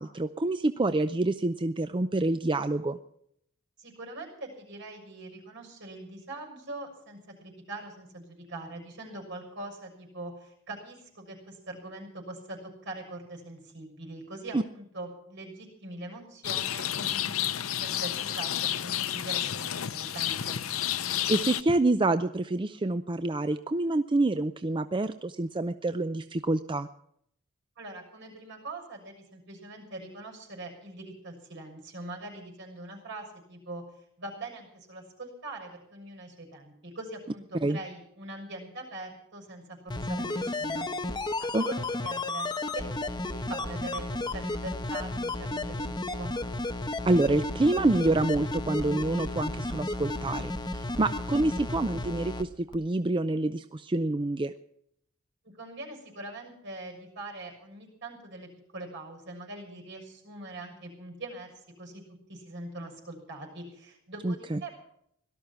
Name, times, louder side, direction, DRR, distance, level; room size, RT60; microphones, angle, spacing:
voice 1, 0.0-3.0 14.5-14.6 21.3-26.9 37.6-37.8 41.5-41.7 47.1-54.5 64.2-64.6, right 2 dB, 25° right, 10 dB, 0.5 m, -27 dB
voice 2, 3.8-20.6 27.8-33.8 34.2-43.1 43.4-46.4 55.4-62.0 62.3-64.8, right 2 dB, 60° right, 2 dB, 6.6 m, -42 dB
Rain, 16.4-21.6, left 11 dB, 90° left, 0.8 m, -31 dB
sound 1, 39.9-52.4 52.7-52.8, left 2 dB, 20° left, 1.1 m, -33 dB
17.5 x 13.0 x 5.9 m, 0.70 s
head